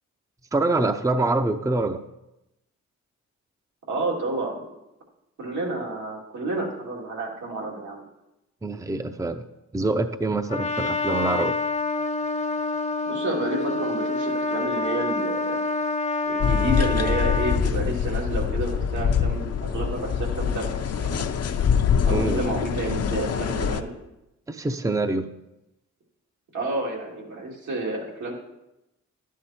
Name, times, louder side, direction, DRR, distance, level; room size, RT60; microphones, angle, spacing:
voice 1, 0.5-2.0 8.6-9.4 9.7-11.6 22.1-22.4 24.5-25.3, right 2 dB, 10° right, 8 dB, 0.6 m, -25 dB
voice 2, 3.9-4.7 5.4-8.0 13.0-15.6 16.3-21.1 22.1-23.9 26.5-28.3, right 2 dB, 80° right, -2 dB, 2.9 m, -30 dB
Trumpet, 10.5-17.6, left 3 dB, 25° left, 0.8 m, -27 dB
sound 1, 16.4-23.8, left 7 dB, 55° left, 0.7 m, -24 dB
11.5 x 9.4 x 4.4 m, 0.91 s
cardioid pair, 90°, 29 cm